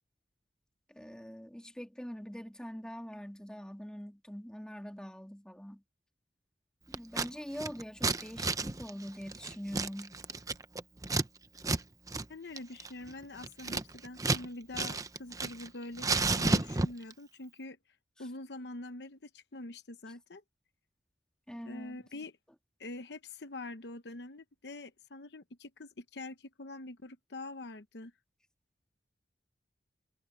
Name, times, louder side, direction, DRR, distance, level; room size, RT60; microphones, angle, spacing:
voice 1, 0.9-5.8 6.9-10.2 21.5-22.0, equal, 5° left, 3.3 m, -44 dB
Scissors, 6.9-7.3 7.6-11.3 11.6-11.8 12.1-12.3 12.6-14.5 14.7-15.7 16.0-17.1, right 3 dB, 20° right, 0.7 m, -32 dB
voice 2, 12.3-17.8 18.2-20.4 21.7-22.4 22.8-28.1, left 2 dB, 65° left, 0.9 m, -45 dB
head